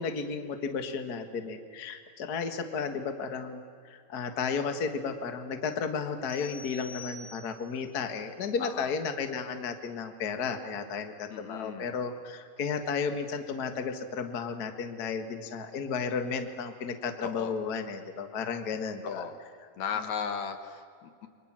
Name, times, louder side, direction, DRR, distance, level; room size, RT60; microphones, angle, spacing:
voice 1, 0.0-19.3, left 5 dB, 90° left, 8 dB, 0.8 m, -33 dB
sound 1, 6.3-7.8, left 3 dB, 20° left, 5.9 m, -46 dB
voice 2, 8.6-8.9 11.3-11.9 17.2-17.6 19.0-19.4 19.8-21.3, left 6 dB, 55° left, 8 dB, 2.4 m, -36 dB
29.5 x 24.5 x 7.5 m, 2.2 s
omnidirectional pair, 4.5 m